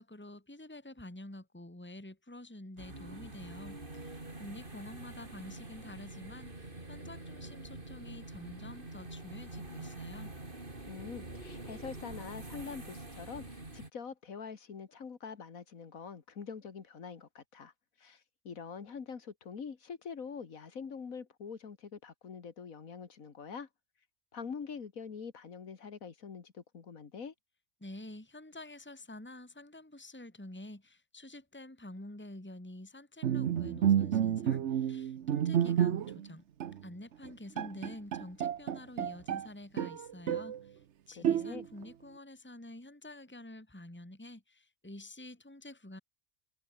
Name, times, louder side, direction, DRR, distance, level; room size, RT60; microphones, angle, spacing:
voice 1, 0.0-10.3 27.8-36.4 36.8-46.0, left 1 dB, 10° left, 2.4 m, -48 dB
sound 1, 2.8-13.9, right 2 dB, 40° right, 4.1 m, -46 dB
voice 2, 10.9-17.7 18.0-23.7 24.3-27.3 41.2-41.7, left 6 dB, 80° left, 2.2 m, -45 dB
Bowed string instrument, 33.2-36.3 36.6-36.8 37.2-37.3 37.6-39.5 39.8-40.6 41.2-41.8, right 9 dB, 60° right, 1.1 m, -30 dB
omnidirectional pair, 1.4 m